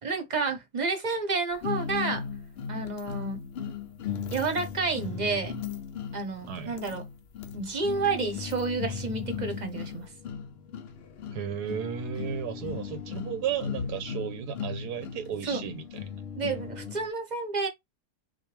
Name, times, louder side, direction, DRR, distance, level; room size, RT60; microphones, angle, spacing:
voice 1, 0.0-2.2 2.7-3.4 4.3-5.6 6.1-7.0 7.5-10.1 15.4-15.6 16.4-17.7, right 4 dB, 35° right, 0.8 m, -30 dB
sound 1, 1.6-17.1, left 7 dB, 85° left, 0.5 m, -37 dB
voice 2, 6.5-6.8 11.3-15.8, right 8 dB, 80° right, 1.2 m, -34 dB
6.3 x 2.2 x 3.3 m
omnidirectional pair, 1.7 m